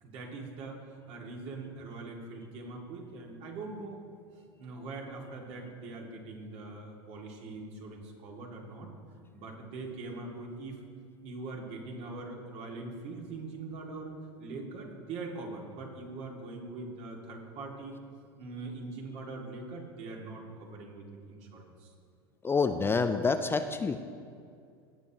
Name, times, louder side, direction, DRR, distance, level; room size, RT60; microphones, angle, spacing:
voice 1, 0.0-4.0 4.6-8.9 9.3-10.8 11.2-14.1 14.4-18.0 18.4-21.9, right 3 dB, 50° right, 0 dB, 2.2 m, -42 dB
voice 2, 22.4-24.0, left 4 dB, 15° left, 8 dB, 0.5 m, -27 dB
18.0 x 6.9 x 2.9 m, 2.3 s
hypercardioid pair, 85°, 13 cm